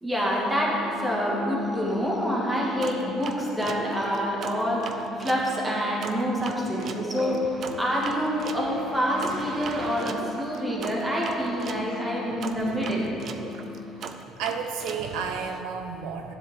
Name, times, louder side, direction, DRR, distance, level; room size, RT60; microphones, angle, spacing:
voice 1, 0.0-0.8 1.0-4.9 5.2-7.4 7.8-13.1, equal, 10° right, -4 dB, 1.9 m, -27 dB
sound 1, 0.6-14.0, left 1 dB, 5° left, 1.3 m, -39 dB
sound 2, 2.8-5.5 6.0-11.9 12.4-15.6, right 6 dB, 45° right, 0.6 m, -39 dB
voice 2, 14.4-16.3, right 5 dB, 80° right, 4 dB, 1.0 m, -32 dB
12.5 x 10.0 x 3.7 m, 2.8 s
cardioid pair, 150°, 0 cm